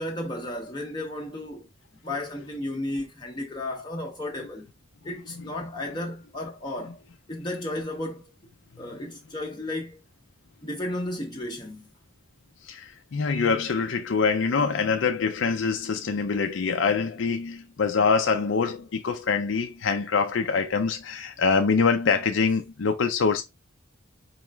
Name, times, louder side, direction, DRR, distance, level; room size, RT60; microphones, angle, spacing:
voice 1, 0.0-1.7 2.0-4.7 5.0-7.0 7.3-8.3 8.8-10.0 10.6-11.9, left 1 dB, 20° left, 0.6 m, -33 dB
voice 2, 12.6-23.4, left 5 dB, 70° left, 0.5 m, -24 dB
4.8 x 3.1 x 3.3 m
head